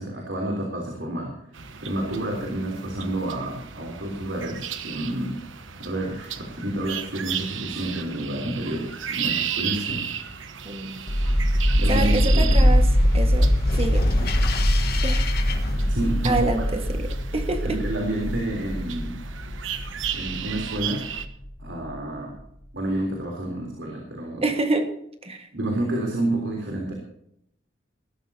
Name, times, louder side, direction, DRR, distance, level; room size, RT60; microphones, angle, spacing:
voice 1, 0.0-5.3 5.8-10.3 11.8-12.7 15.9-16.4 17.6-19.2 20.1-21.0 21.6-22.3 22.7-24.4 25.5-26.9, right 1 dB, 70° right, 0 dB, 3.6 m, -29 dB
sound 1, 1.5-21.3, right 8 dB, 85° right, 1.1 m, -35 dB
voice 2, 10.6-11.0 11.9-14.1 15.0-15.2 16.2-17.8 24.4-24.9 25.2-25.5, right 2 dB, 30° right, 6 dB, 1.6 m, -27 dB
sound 2, 11.1-16.4, equal, 55° left, 1.5 m, -25 dB
sound 3, 11.2-21.9, equal, 40° left, 1.2 m, -24 dB
19.5 x 13.5 x 2.8 m, 0.75 s
head